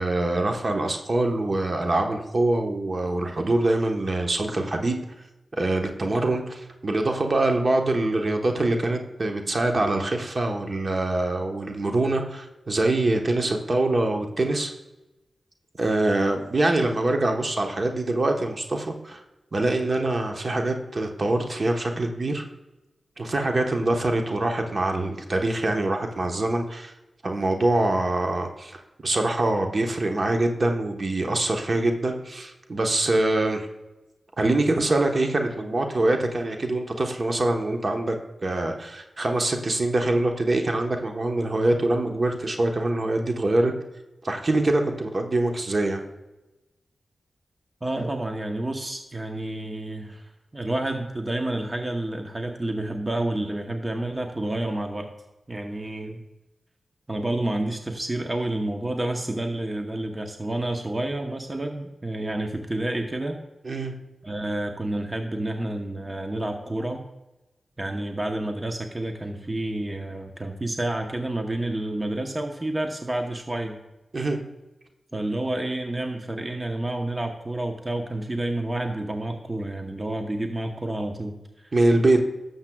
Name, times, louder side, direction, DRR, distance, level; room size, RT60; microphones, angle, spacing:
voice 1, 0.0-5.0 5.6-14.7 15.8-19.2 19.5-22.4 23.2-26.9 27.2-33.7 34.4-38.2 38.4-43.7 44.2-46.0 63.6-63.9 74.1-74.4 81.7-82.2, right 2 dB, 50° right, 3 dB, 1.1 m, -24 dB
voice 2, 47.8-55.1 55.5-56.2 57.1-63.4 64.2-67.1 67.8-73.8 75.1-81.7, right 1 dB, 30° right, 4 dB, 0.9 m, -29 dB
12.0 x 7.3 x 2.3 m, 1.0 s
cardioid pair, 45°, 0 cm